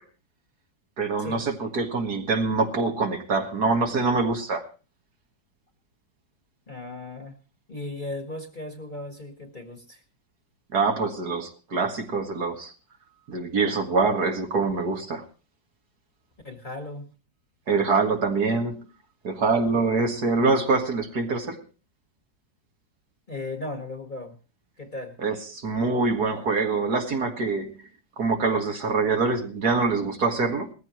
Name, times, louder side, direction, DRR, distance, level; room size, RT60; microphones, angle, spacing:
voice 1, 1.0-4.7 10.7-12.7 13.3-15.2 17.7-18.8 19.2-21.6 25.2-27.8 28.2-30.7, right 4 dB, 55° right, 3 dB, 2.3 m, -25 dB
voice 2, 6.7-7.4 7.7-10.0 16.4-17.1 23.3-24.4 24.8-25.2, left 2 dB, 25° left, 5 dB, 1.7 m, -36 dB
20.0 x 14.5 x 3.1 m, 0.32 s
omnidirectional pair, 2.0 m